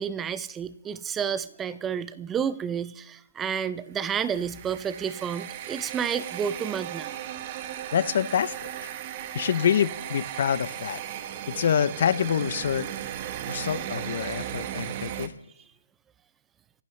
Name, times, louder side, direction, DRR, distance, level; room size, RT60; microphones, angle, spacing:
voice 1, 0.0-7.2, right 7 dB, 10° right, 15 dB, 0.4 m, -30 dB
sound 1, 4.0-15.3, right 11 dB, 25° right, 0.8 m, -36 dB
voice 2, 7.9-8.7 9.3-11.0 11.5-12.9 13.5-15.3, left 8 dB, 45° left, 18 dB, 0.6 m, -26 dB
25.5 x 11.5 x 3.2 m, 0.79 s
hypercardioid pair, 170°, 0 cm